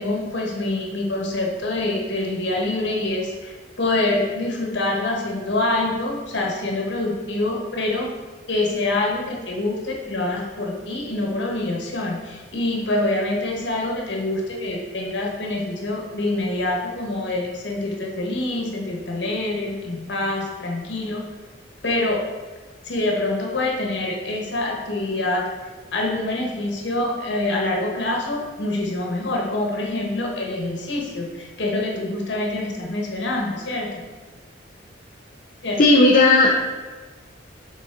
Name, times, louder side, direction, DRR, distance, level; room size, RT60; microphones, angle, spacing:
voice 1, 0.0-8.1 8.5-21.2 21.8-22.2 22.8-25.4 25.9-34.0 35.6-35.8, left 2 dB, 65° left, -1 dB, 1.2 m, -25 dB
voice 2, 35.8-36.6, left 2 dB, 50° left, -2 dB, 0.5 m, -14 dB
6.7 x 4.0 x 3.7 m, 1.3 s
head